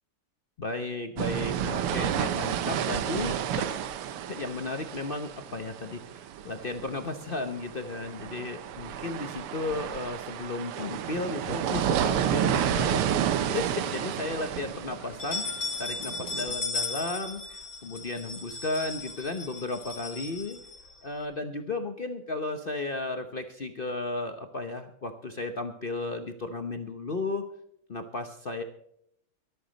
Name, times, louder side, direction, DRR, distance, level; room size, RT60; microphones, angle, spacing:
voice 1, 0.6-3.8 4.3-13.1 13.4-15.5 15.8-20.6 21.0-27.4 27.9-28.6, left 3 dB, 65° left, 6 dB, 0.5 m, -34 dB
sound 1, 1.2-16.5, right 9 dB, 85° right, 1.8 m, -31 dB
sound 2, 12.5-13.5 13.9-14.0 14.3-14.4 15.0-21.2, left 3 dB, 50° left, 3.8 m, -36 dB
24.0 x 8.4 x 4.0 m, 0.72 s
omnidirectional pair, 2.4 m